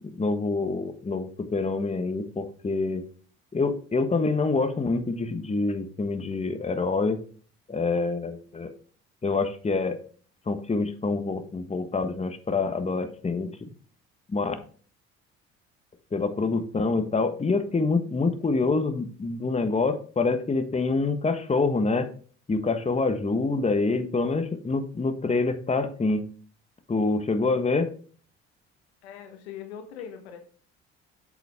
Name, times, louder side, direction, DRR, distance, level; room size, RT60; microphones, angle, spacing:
voice 1, 0.0-3.0 3.5-7.2 7.7-8.7 9.2-10.0 10.5-13.7 14.3-14.5 16.1-22.1 22.5-26.2 26.9-27.9, left 3 dB, 20° left, 8 dB, 1.4 m, -26 dB
voice 2, 29.0-30.4, left 8 dB, 85° left, 5 dB, 1.6 m, -41 dB
7.8 x 7.4 x 3.6 m, 0.42 s
hypercardioid pair, 60°, 31 cm